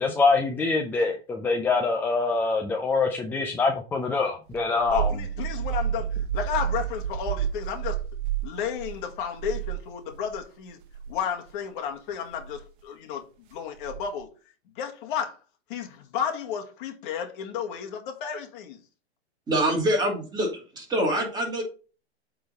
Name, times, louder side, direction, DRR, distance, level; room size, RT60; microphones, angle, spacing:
voice 1, 0.0-5.1, left 4 dB, 5° left, 0.3 m, -24 dB
sound 1, 4.5-10.4 10.8-11.2 12.3-12.6 13.8-14.2, right 9 dB, 50° right, 1.2 m, -31 dB
voice 2, 4.9-8.0 8.4-10.8 11.1-13.3 13.5-14.3 14.8-15.4 15.7-18.8, left 8 dB, 50° left, 1.6 m, -32 dB
voice 3, 19.5-21.6, right 1 dB, 15° right, 2.8 m, -25 dB
8.5 x 3.9 x 4.1 m
hypercardioid pair, 130°, 33 cm